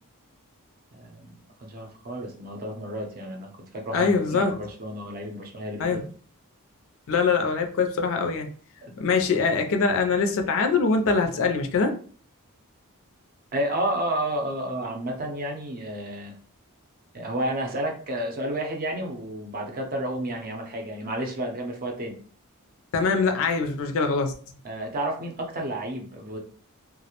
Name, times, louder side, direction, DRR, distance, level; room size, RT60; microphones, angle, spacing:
voice 1, 0.9-6.0 8.8-8.9 13.5-16.3 17.1-22.1 24.6-26.4, right 1 dB, 40° right, 2 dB, 0.6 m, -31 dB
voice 2, 3.9-4.6 5.8-6.0 7.1-8.5 9.0-11.9 22.9-24.3, left 4 dB, 65° left, 5 dB, 0.4 m, -23 dB
2.3 x 2.0 x 2.9 m, 0.43 s
head